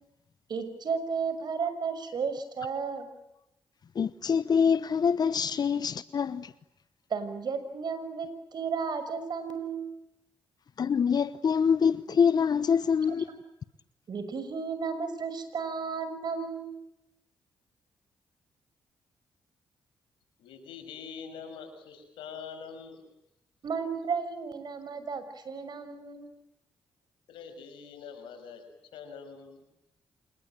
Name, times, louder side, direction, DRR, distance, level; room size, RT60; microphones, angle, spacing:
voice 1, 0.5-3.1 7.1-9.9 13.1-13.4 14.1-16.8 23.6-26.3, right 5 dB, 60° right, 6.2 m, -33 dB
voice 2, 4.0-6.5 10.8-13.3, left 6 dB, 55° left, 1.0 m, -25 dB
voice 3, 20.4-23.0 27.3-28.6 28.9-29.6, left 6 dB, 85° left, 6.1 m, -44 dB
27.5 x 21.0 x 9.0 m
supercardioid pair, 50°, 8 cm